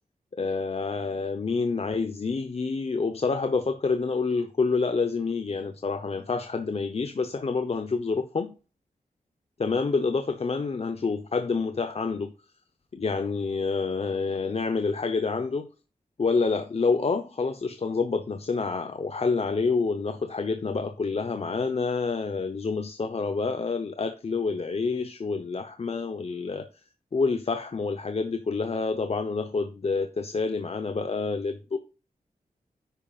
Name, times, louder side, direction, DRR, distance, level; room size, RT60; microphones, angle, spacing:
voice 1, 0.4-8.5 9.6-12.3 12.9-15.7 16.2-26.7 27.1-31.8, left 4 dB, 45° left, 0.9 m, -28 dB
10.5 x 8.8 x 2.5 m
wide cardioid pair, 130°, 14 cm